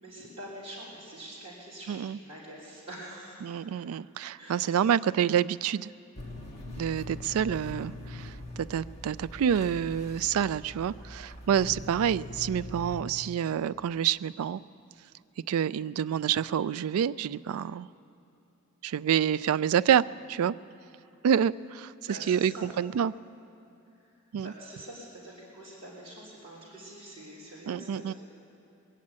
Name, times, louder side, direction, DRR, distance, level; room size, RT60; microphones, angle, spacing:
voice 1, 0.0-3.6 4.3-4.8 22.1-22.7 23.9-24.0 24.4-28.1, right 1 dB, 30° right, -9 dB, 3.3 m, -45 dB
voice 2, 1.9-2.2 3.4-5.9 6.7-14.6 15.5-17.9 18.8-20.0 20.3-20.5 21.2-23.1 24.3-24.5 27.7-28.1, right 8 dB, 85° right, 16 dB, 0.3 m, -28 dB
sound 1, 6.2-13.0, left 2 dB, 30° left, 1.8 m, -42 dB
22.0 x 7.4 x 8.8 m, 2.8 s
head